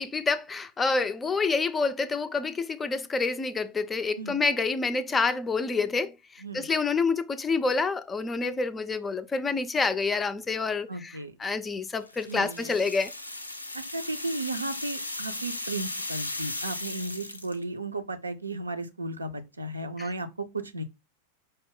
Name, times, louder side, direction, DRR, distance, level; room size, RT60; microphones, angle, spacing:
voice 1, 0.0-6.1 6.5-11.1 11.4-13.1 20.0-20.1, left 4 dB, 15° left, 0.3 m, -27 dB
voice 2, 6.4-6.7 10.9-11.3 12.3-12.7 13.7-20.8, right 2 dB, 80° right, 0.5 m, -35 dB
sound 1, 12.1-17.6, left 2 dB, 80° left, 0.4 m, -36 dB
5.2 x 2.0 x 3.9 m
figure-of-eight pair, 90°, 0 cm